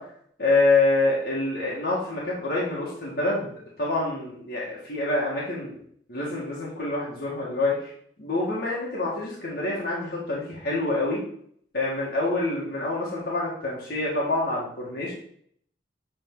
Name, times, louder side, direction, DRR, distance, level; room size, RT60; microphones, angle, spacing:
voice 1, 0.4-3.5 3.8-5.8 6.1-7.9 8.2-11.2 11.7-15.1, left 2 dB, 60° left, -6 dB, 1.7 m, -26 dB
8.9 x 3.8 x 3.8 m, 0.64 s
head